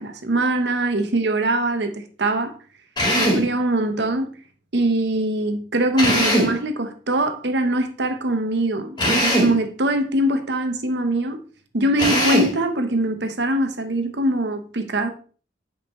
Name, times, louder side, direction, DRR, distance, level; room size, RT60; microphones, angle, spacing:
voice 1, 0.0-2.5 3.1-4.3 4.7-11.4 11.7-15.1, right 1 dB, 65° right, 1.0 m, -22 dB
Drill, 3.0-3.5 6.0-6.6 9.0-9.6 12.0-12.6, equal, 25° left, 2.6 m, -20 dB
8.7 x 5.0 x 3.1 m
head